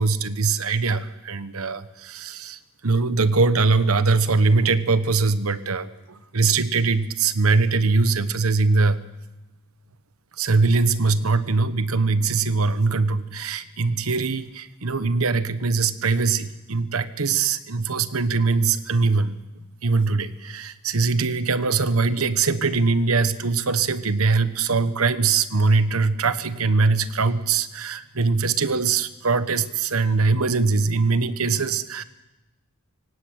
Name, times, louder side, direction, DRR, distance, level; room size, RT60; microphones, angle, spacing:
voice 1, 0.0-9.1 10.4-19.4 19.8-32.0, right 4 dB, 75° right, 13 dB, 1.2 m, -22 dB
23.0 x 18.0 x 8.9 m, 1.0 s
head